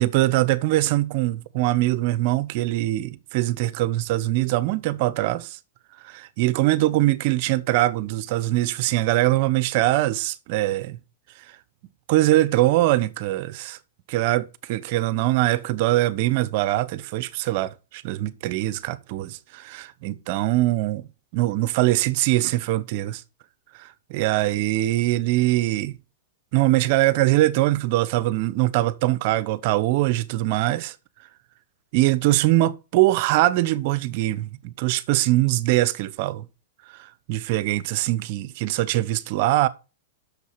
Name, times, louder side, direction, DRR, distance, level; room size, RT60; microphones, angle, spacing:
voice 1, 0.0-5.6 6.0-11.0 12.1-13.8 14.1-23.2 23.7-26.0 26.5-31.0 31.9-36.4 36.9-39.7, right 16 dB, 55° right, 0.9 m, -22 dB
8.4 x 6.7 x 6.7 m
hypercardioid pair, 115°, 0 cm